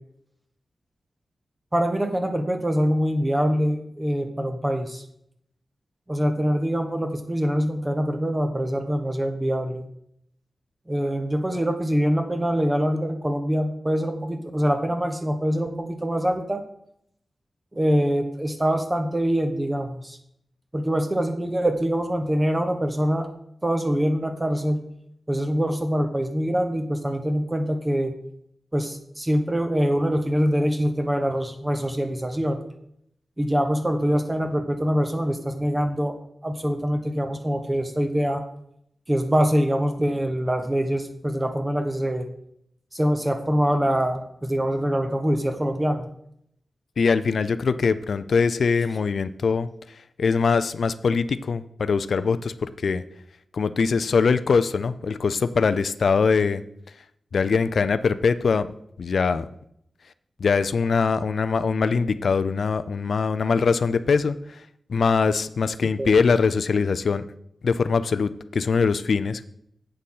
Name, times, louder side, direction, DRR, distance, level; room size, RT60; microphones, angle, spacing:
voice 1, 1.7-5.0 6.1-9.9 10.9-16.6 17.7-20.2 20.7-23.3 23.6-24.8 25.3-28.1 28.7-32.6 33.4-36.2 36.4-38.4 39.1-42.3 42.9-46.1 66.0-66.1, equal, 15° right, 6 dB, 0.8 m, -24 dB
voice 2, 47.0-49.7 50.2-53.0 53.5-56.6 57.3-58.7 59.0-59.5 60.4-64.4 64.9-67.2 67.6-69.4, left 5 dB, 65° left, 14 dB, 0.5 m, -22 dB
7.9 x 6.6 x 5.5 m, 0.73 s
wide cardioid pair, 150°, 0 cm